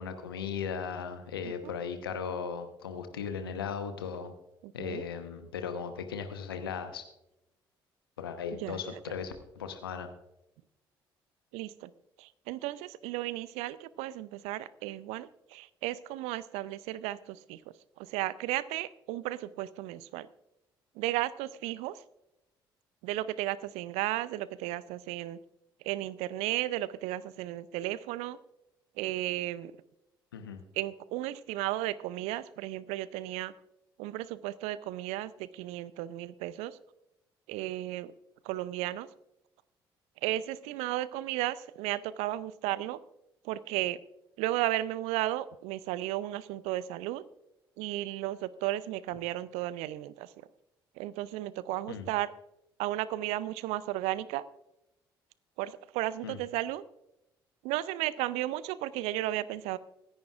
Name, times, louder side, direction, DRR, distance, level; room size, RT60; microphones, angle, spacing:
voice 1, 0.0-4.3 4.7-7.0 8.2-10.1 30.3-30.6 51.9-52.1 56.2-56.4, left 6 dB, 80° left, 8 dB, 1.0 m, -37 dB
voice 2, 4.6-5.0 8.6-9.0 11.5-11.9 12.2-17.6 18.0-20.3 21.0-22.0 23.0-25.4 25.8-28.4 29.0-29.7 30.7-33.5 34.0-36.8 37.5-38.1 38.4-39.1 40.2-43.0 43.4-44.0 44.4-47.2 47.8-50.3 51.0-52.3 52.8-54.4 55.6-56.8 57.6-59.8, right 15 dB, 60° right, 19 dB, 0.5 m, -34 dB
23.5 x 10.5 x 2.4 m, 0.89 s
figure-of-eight pair, 45°, 12 cm